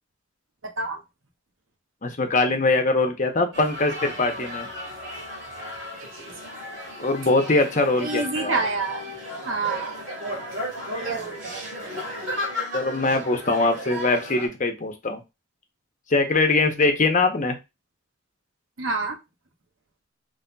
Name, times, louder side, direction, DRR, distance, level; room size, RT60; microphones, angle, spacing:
voice 1, 0.6-1.0 6.2-6.3 8.0-9.1 9.4-10.0 11.0-11.6 18.8-19.2, right 4 dB, 85° right, 3 dB, 1.1 m, -28 dB
voice 2, 2.0-4.7 7.0-8.6 11.0-11.1 12.7-15.2 16.1-17.6, left 3 dB, 40° left, 5 dB, 0.8 m, -22 dB
sound 1, 3.5-14.5, left 1 dB, 65° right, 2.1 m, -34 dB
5.3 x 3.3 x 2.3 m, 0.24 s
head